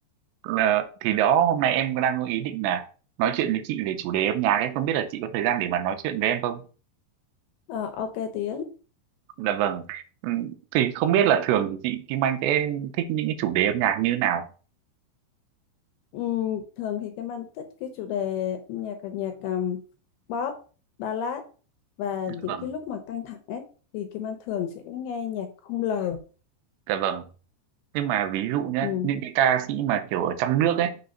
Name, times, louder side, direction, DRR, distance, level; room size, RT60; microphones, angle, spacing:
voice 1, 0.4-2.9 3.2-6.6 9.4-14.5 22.3-22.7 26.9-27.3 27.9-31.0, right 10 dB, 90° right, 2.9 m, -25 dB
voice 2, 7.7-8.7 16.1-19.8 20.3-20.5 21.0-21.4 22.0-23.6 23.9-26.2 28.8-29.1, left 9 dB, 75° left, 2.5 m, -31 dB
6.8 x 3.5 x 5.3 m
omnidirectional pair, 5.0 m